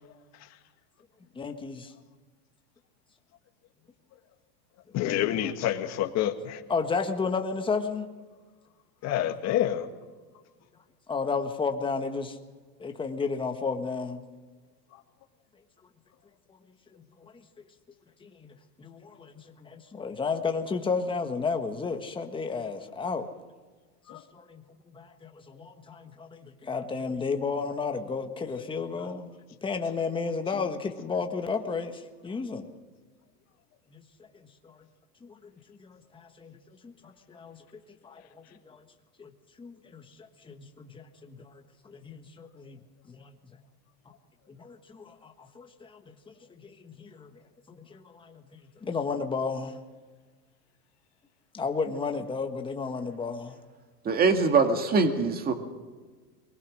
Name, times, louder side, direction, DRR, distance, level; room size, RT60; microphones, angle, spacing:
voice 1, 1.3-1.9 6.7-8.1 11.1-12.4 12.8-14.2 17.2-17.3 18.2-23.3 24.3-24.5 25.2-29.3 29.6-32.7 33.9-34.0 34.6-34.8 35.2-35.3 35.7-36.6 36.8-37.6 39.2-39.3 39.6-40.1 40.4-42.8 43.1-43.3 44.5-47.3 47.7-48.5 48.8-49.8 51.5-53.6, left 4 dB, 10° left, 5 dB, 1.5 m, -33 dB
voice 2, 4.9-6.6 9.0-9.9 24.1-24.2 28.5-28.6 29.0-29.1, left 11 dB, 35° left, 5 dB, 1.8 m, -28 dB
voice 3, 54.1-55.5, right 4 dB, 20° right, 6 dB, 1.9 m, -23 dB
22.5 x 20.5 x 6.4 m, 1.4 s
supercardioid pair, 140°, 46 cm